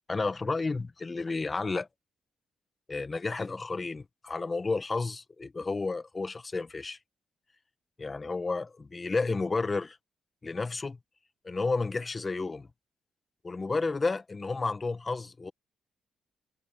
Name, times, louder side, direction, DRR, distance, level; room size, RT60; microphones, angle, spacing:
voice 1, 0.1-1.9 2.9-7.0 8.0-10.0 10.4-11.0 11.4-12.7 13.4-15.5, left 3 dB, 30° left, 1.7 m, -31 dB
supercardioid pair, 55°, 0 cm